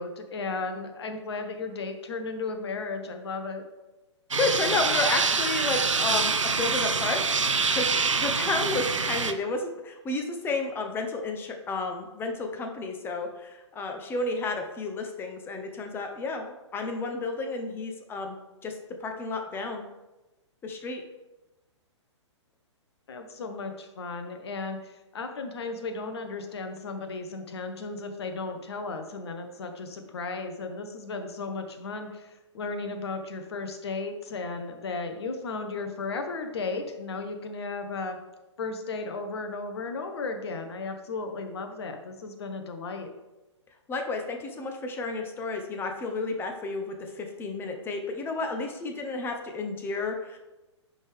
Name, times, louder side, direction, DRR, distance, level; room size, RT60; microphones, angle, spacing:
voice 1, 0.0-3.6 23.1-38.2 38.6-43.1, left 3 dB, 60° left, 6 dB, 1.1 m, -35 dB
sound 1, 4.3-9.3, right 4 dB, 85° right, 0.6 m, -26 dB
voice 2, 4.4-7.2 7.7-7.9 8.1-18.3 18.6-18.7 19.0-19.8 20.6-21.0 43.9-50.4, left 3 dB, 15° left, 4 dB, 0.8 m, -31 dB
10.5 x 3.7 x 3.5 m, 1.0 s
figure-of-eight pair, 115°, 16 cm